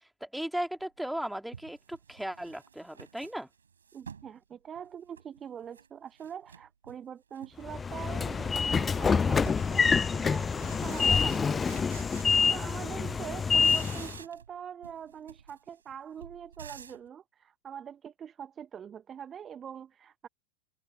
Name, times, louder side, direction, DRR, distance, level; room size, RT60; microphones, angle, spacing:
voice 1, 0.2-3.5, right 1 dB, ahead, 3.1 m, -36 dB
sound 1, 0.9-1.0 1.5-4.3 4.8-5.9 6.2-7.0 7.3-7.8 8.1-12.8 13.0-14.6 14.8-17.1, right 6 dB, 70° right, 7.7 m, -50 dB
voice 2, 3.9-12.1 12.5-20.3, right 8 dB, 25° right, 1.1 m, -43 dB
Train / Sliding door, 7.7-14.2, left 5 dB, 15° left, 0.8 m, -27 dB
figure-of-eight pair, 90°, 0 cm